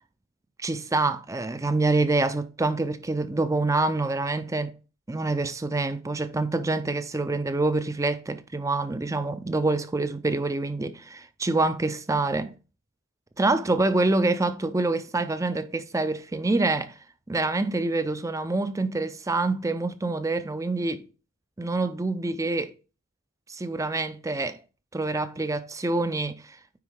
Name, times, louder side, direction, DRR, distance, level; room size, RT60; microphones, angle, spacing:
voice 1, 0.6-4.7 5.1-12.5 13.4-17.0 17.3-21.1 21.6-22.7 23.5-24.6 24.9-26.6, right 2 dB, 15° right, 0.4 m, -26 dB
9.4 x 3.9 x 3.6 m
head